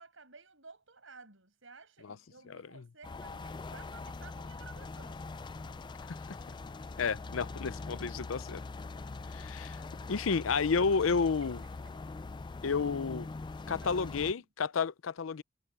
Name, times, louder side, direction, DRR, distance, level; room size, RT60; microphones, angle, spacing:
voice 1, 0.0-5.2 11.2-12.0 13.7-14.5, right 4 dB, 70° right, 7.5 m, -55 dB
sound 1, 3.0-14.3, left 3 dB, 25° left, 0.3 m, -43 dB
voice 2, 7.0-8.6 9.3-9.8 10.1-11.6 12.6-13.3 13.7-15.4, left 5 dB, 80° left, 0.6 m, -31 dB
head